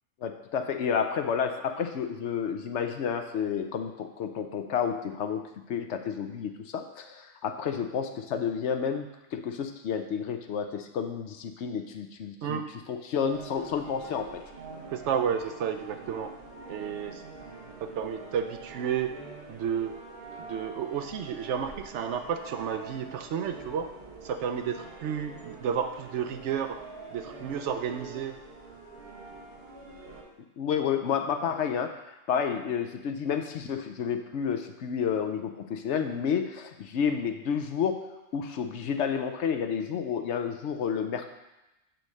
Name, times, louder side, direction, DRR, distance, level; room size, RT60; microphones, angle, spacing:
voice 1, 0.2-5.4 5.7-12.6 12.9-14.4 30.6-31.9 32.3-38.0 38.3-41.3, left 7 dB, 65° left, 6 dB, 0.9 m, -30 dB
sound 1, 13.2-30.2, right 3 dB, 50° right, 1.5 m, -45 dB
voice 2, 14.9-16.3 16.7-17.2 17.8-19.1 19.5-19.9 20.4-23.9 24.2-26.8 27.1-28.4, right 7 dB, 70° right, 7 dB, 0.8 m, -31 dB
8.9 x 3.1 x 6.4 m, 0.97 s
omnidirectional pair, 1.4 m